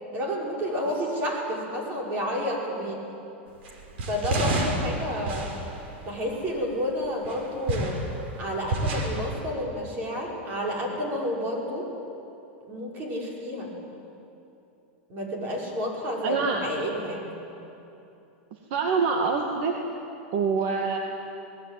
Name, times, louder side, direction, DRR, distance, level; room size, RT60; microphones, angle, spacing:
voice 1, 0.1-3.0 4.1-5.5 6.0-8.0 8.4-11.9 12.7-13.7 15.1-17.3, equal, 30° right, -2 dB, 5.8 m, -30 dB
sound 1, 3.6-6.7 7.2-9.3, right 1 dB, 75° right, 4.9 m, -30 dB
voice 2, 16.2-16.6 18.5-19.7 20.3-21.0, right 5 dB, 55° right, 2 dB, 2.0 m, -25 dB
21.5 x 19.5 x 9.4 m, 2.9 s
supercardioid pair, 155°, 6 cm